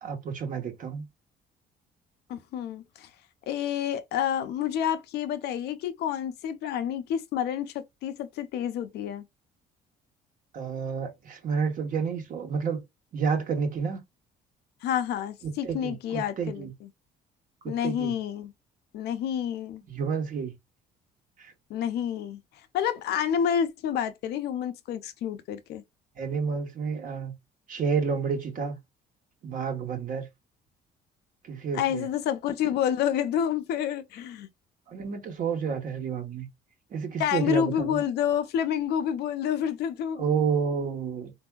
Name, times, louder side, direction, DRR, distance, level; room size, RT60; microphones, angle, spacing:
voice 1, 0.0-1.0 10.5-12.8 13.1-14.0 15.4-16.7 17.6-18.1 19.9-20.5 21.4-21.5 26.2-27.3 27.7-28.8 29.4-30.3 31.4-32.1 34.9-36.5 36.9-38.0 40.2-41.3, right 6 dB, 55° right, 1.2 m, -30 dB
voice 2, 2.3-3.1 3.5-9.2 14.8-16.7 17.7-18.5 18.9-19.8 21.7-22.4 22.7-25.8 31.7-34.5 37.2-40.3, left 9 dB, 75° left, 0.6 m, -29 dB
3.5 x 2.6 x 2.3 m
cardioid pair, 110°, 17 cm